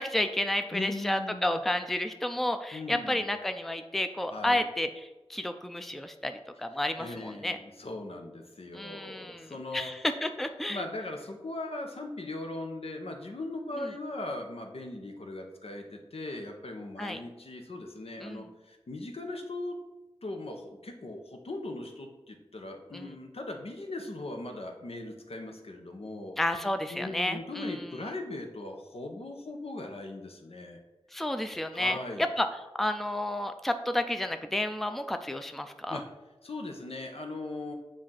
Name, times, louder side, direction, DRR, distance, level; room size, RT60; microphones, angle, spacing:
voice 1, 0.0-7.6 8.7-10.9 17.0-17.2 18.2-18.5 22.9-23.1 26.4-27.7 31.1-32.5 32.8-36.0, left 1 dB, ahead, 8 dB, 0.4 m, -31 dB
voice 2, 0.7-1.6 2.7-3.2 4.3-4.6 7.0-9.9 10.7-19.8 20.2-26.4 26.9-30.8 31.7-32.3 35.9-36.1 36.4-37.7, left 2 dB, 75° left, 3 dB, 0.8 m, -39 dB
7.3 x 2.5 x 5.6 m, 1.1 s
wide cardioid pair, 45°, 10 cm